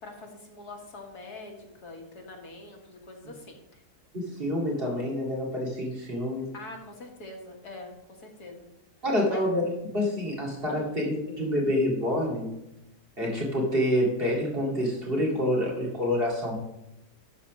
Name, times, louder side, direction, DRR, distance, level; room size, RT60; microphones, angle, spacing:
voice 1, 0.0-3.8 6.5-7.9 8.2-8.7 9.3-9.4 10.7-10.9, left 2 dB, 80° left, 1 dB, 2.1 m, -44 dB
voice 2, 4.1-6.5 9.0-12.5 13.2-16.6, left 1 dB, 35° right, -3 dB, 2.3 m, -27 dB
11.5 x 4.2 x 6.0 m, 0.87 s
omnidirectional pair, 1.6 m